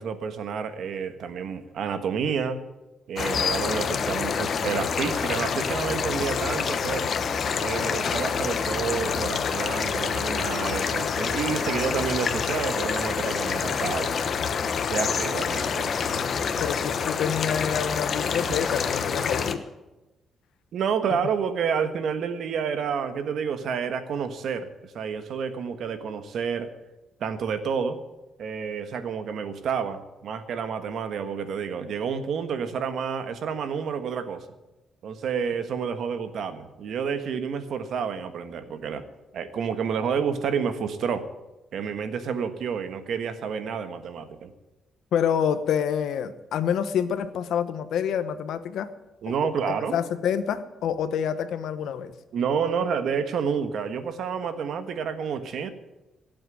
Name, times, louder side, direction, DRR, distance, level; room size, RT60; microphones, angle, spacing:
voice 1, 0.0-2.6 3.1-7.1 7.6-14.2 14.9-15.9 20.7-26.7 27.2-28.0 28.4-34.4 35.0-39.1 39.3-41.3 41.7-44.5 49.2-50.0 52.3-55.7, right 6 dB, 65° right, 9 dB, 1.5 m, -29 dB
sound 1, 3.2-19.5, left 6 dB, 50° left, 1.1 m, -27 dB
voice 2, 16.6-19.6 21.1-21.2 45.1-48.9 49.3-49.4 49.9-52.1, left 8 dB, 80° left, 11 dB, 1.1 m, -27 dB
17.5 x 7.8 x 9.2 m, 1.0 s
cardioid pair, 130°, 0 cm